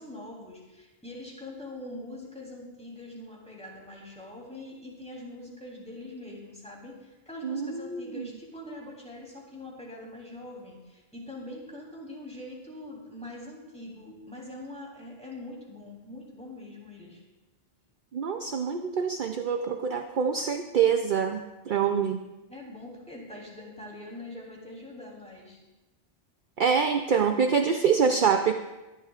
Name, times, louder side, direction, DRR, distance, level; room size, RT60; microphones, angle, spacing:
voice 1, 0.0-17.2 22.5-25.6, left 1 dB, 5° left, -4 dB, 3.4 m, -43 dB
voice 2, 7.4-8.3 18.1-22.2 26.6-28.5, right 6 dB, 55° right, 5 dB, 0.7 m, -25 dB
23.0 x 11.5 x 2.5 m, 1.1 s
omnidirectional pair, 1.1 m